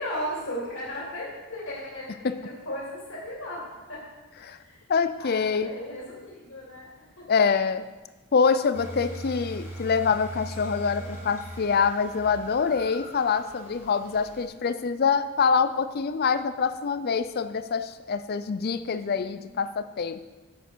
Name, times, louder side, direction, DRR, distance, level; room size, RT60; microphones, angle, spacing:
voice 1, 0.0-7.3 9.0-9.4 10.9-11.3 18.8-19.7, equal, 65° left, -6 dB, 3.0 m, -37 dB
voice 2, 4.9-5.7 7.3-7.9 8.3-20.2, left 5 dB, 45° left, 12 dB, 0.4 m, -25 dB
sound 1, 8.7-14.5, right 1 dB, 10° right, 2.1 m, -41 dB
9.9 x 7.9 x 4.5 m, 1.2 s
head